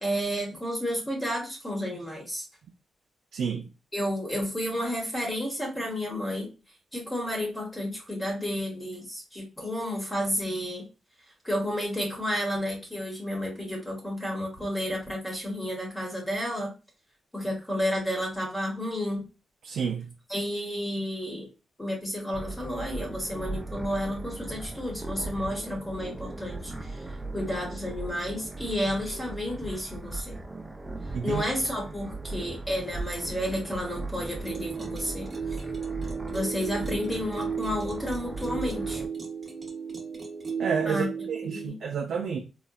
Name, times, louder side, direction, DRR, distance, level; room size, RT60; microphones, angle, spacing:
voice 1, 0.0-2.4 3.9-6.5 6.9-10.9 11.4-16.7 17.3-19.2 20.3-21.5 21.8-27.0 27.3-30.4 31.2-35.3 36.2-39.0 40.9-41.1 41.5-41.9, equal, 15° left, 0.9 m, -31 dB
voice 2, 3.3-3.7 19.6-20.1 31.1-31.4 40.6-42.4, right 6 dB, 80° right, 0.4 m, -30 dB
sound 1, 22.3-39.1, right 2 dB, 10° right, 0.4 m, -38 dB
sound 2, 34.4-41.7, right 6 dB, 35° right, 0.8 m, -35 dB
3.8 x 2.1 x 2.2 m
cardioid pair, 120°, 0 cm